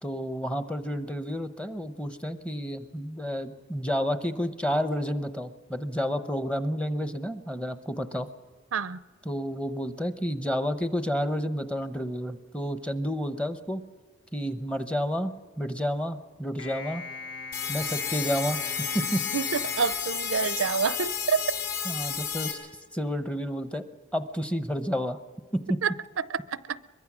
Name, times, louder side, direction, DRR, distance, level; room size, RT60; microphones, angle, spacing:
voice 1, 0.0-8.3 9.2-13.8 14.3-17.1 17.7-18.6 18.9-19.2 21.9-22.6 22.9-23.8 24.1-25.2 25.5-25.8, equal, 5° left, 0.8 m, -30 dB
voice 2, 8.7-9.0 19.3-21.4 25.8-26.8, right 6 dB, 80° right, 0.5 m, -28 dB
sound 1, 16.6-21.1, left 3 dB, 70° left, 1.4 m, -40 dB
sound 2, 17.5-22.5, left 8 dB, 45° left, 4.5 m, -32 dB
23.0 x 22.0 x 6.2 m
head